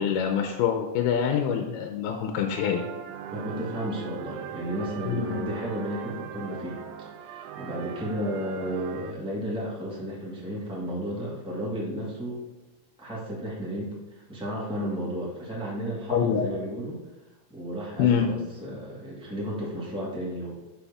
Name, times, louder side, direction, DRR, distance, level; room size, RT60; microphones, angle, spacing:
voice 1, 0.0-2.8 5.0-5.5 16.1-16.5 18.0-18.3, left 8 dB, 90° left, 4 dB, 2.6 m, -25 dB
sound 1, 2.5-9.1, right 9 dB, 80° right, 2.2 m, -40 dB
voice 2, 3.3-6.8 7.2-12.4 13.0-17.0 17.5-20.6, equal, 5° right, -6 dB, 0.4 m, -33 dB
7.0 x 6.1 x 3.6 m, 1.1 s
omnidirectional pair, 4.3 m